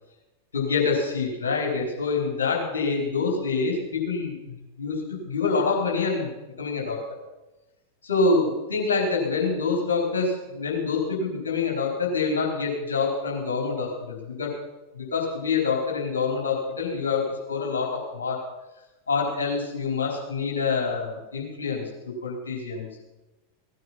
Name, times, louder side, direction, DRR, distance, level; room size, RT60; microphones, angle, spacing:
voice 1, 0.5-7.2 8.0-14.6 14.9-18.4 19.1-22.9, left 4 dB, 70° left, -1 dB, 4.4 m, -26 dB
17.0 x 9.3 x 5.8 m, 1.0 s
figure-of-eight pair, 90°, 0 cm